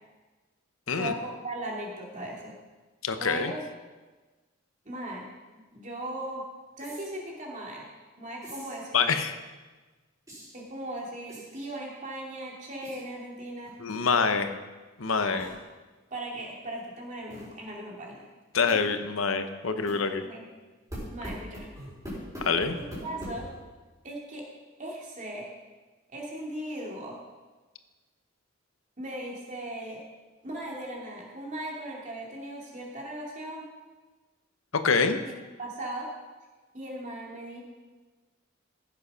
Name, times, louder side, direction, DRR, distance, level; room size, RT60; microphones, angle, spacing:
voice 1, 1.0-2.5 3.2-3.6 4.8-5.3 5.7-6.4 6.8-7.9 8.2-9.2 10.5-13.7 14.0-14.5 15.2-15.5 16.1-18.2 20.2-20.4 21.1-21.7 22.7-23.5 24.0-24.5 24.8-25.5 26.1-27.2 29.0-30.0 30.4-33.6 35.6-36.1 36.7-37.6, right 1 dB, 40° right, -2 dB, 2.9 m, -38 dB
voice 2, 3.0-3.5 8.9-9.4 13.8-14.5 15.0-15.5 18.5-20.2 22.4-22.8 34.8-35.2, left 5 dB, 85° left, 8 dB, 0.9 m, -26 dB
sound 1, 6.8-7.1 8.4-8.8 10.3-10.6 11.3-11.7 12.8-13.0 13.6-13.9 14.2-14.3 15.4-15.6 17.3-17.5 18.7-18.9 19.9-20.0 20.9-23.6, equal, 15° right, 4.7 m, -42 dB
15.0 x 7.6 x 5.7 m, 1.3 s
head